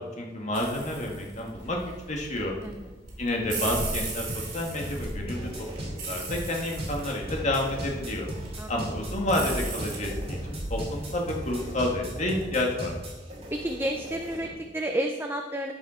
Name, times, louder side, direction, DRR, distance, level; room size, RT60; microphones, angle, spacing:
voice 1, 0.0-1.8 2.1-2.5 3.2-4.3 4.5-5.5 6.1-8.3 8.7-12.9, left 1 dB, 40° left, 0 dB, 1.7 m, -29 dB
sound 1, 0.5-11.2, right 2 dB, 55° right, 3.3 m, -37 dB
voice 2, 2.6-3.0 8.6-8.7 13.5-15.7, right 1 dB, 10° right, 4 dB, 0.5 m, -31 dB
sound 2, 3.4-14.5, right 1 dB, 35° right, 2.3 m, -37 dB
13.5 x 5.5 x 4.4 m, 1.3 s
head